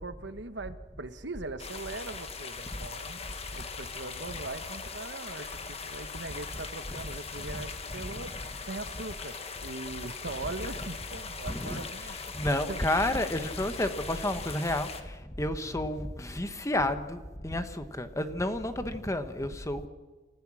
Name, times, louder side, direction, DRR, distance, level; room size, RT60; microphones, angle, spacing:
voice 1, 0.0-3.2 3.5-9.4 9.6-12.2 12.7-12.8 15.6-15.8, right 2 dB, 65° right, 11 dB, 1.2 m, -40 dB
sound 1, 1.6-15.0, left 5 dB, 35° left, 1.6 m, -41 dB
voice 2, 7.9-8.4 10.8-10.9 11.4-19.9, left 1 dB, 15° left, 9 dB, 1.2 m, -31 dB
27.5 x 15.0 x 6.3 m, 1.3 s
head